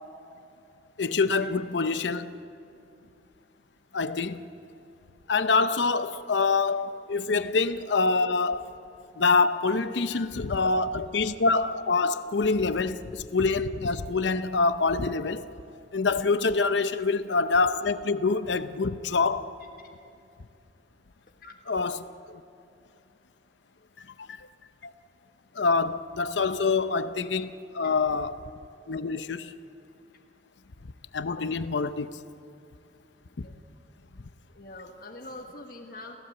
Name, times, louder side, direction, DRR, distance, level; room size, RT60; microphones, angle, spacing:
voice 1, 1.0-2.3 3.9-4.4 5.3-8.8 9.2-15.5 15.9-19.5 21.7-22.4 24.2-24.5 24.8-24.9 25.5-28.3 28.9-29.5 31.1-32.2 33.4-33.5, left 4 dB, 85° left, 0.7 m, -26 dB
voice 2, 10.1-10.4 12.7-12.8 21.4-21.5 33.4-33.5 34.5-36.2, left 2 dB, 55° left, 1.5 m, -44 dB
29.5 x 15.5 x 7.9 m
head